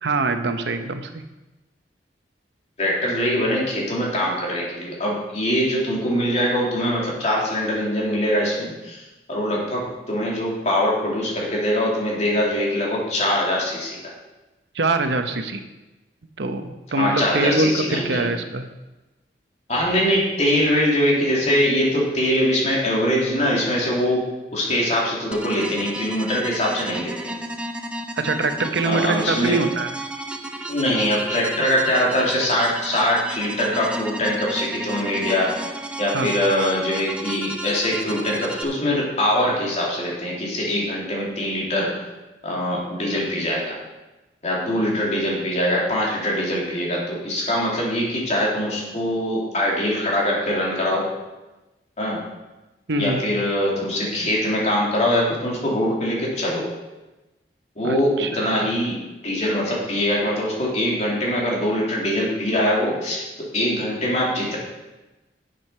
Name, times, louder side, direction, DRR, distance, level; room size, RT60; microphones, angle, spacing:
voice 1, 0.0-1.2 14.7-15.6 16.4-18.6 28.2-29.9 36.1-36.3 52.9-53.2 57.8-58.7, right 3 dB, 80° right, 8 dB, 0.8 m, -24 dB
voice 2, 2.8-9.0 9.3-14.1 16.9-18.3 19.7-24.2 24.5-27.3 28.8-29.6 30.7-35.6 36.0-41.9 42.4-43.8 44.4-51.0 52.0-52.2 53.0-56.7 57.8-59.0 59.2-64.6, equal, 40° left, -3 dB, 2.8 m, -23 dB
sound 1, 25.3-38.6, right 1 dB, 5° right, 0.6 m, -33 dB
7.7 x 7.7 x 5.5 m, 1.1 s
head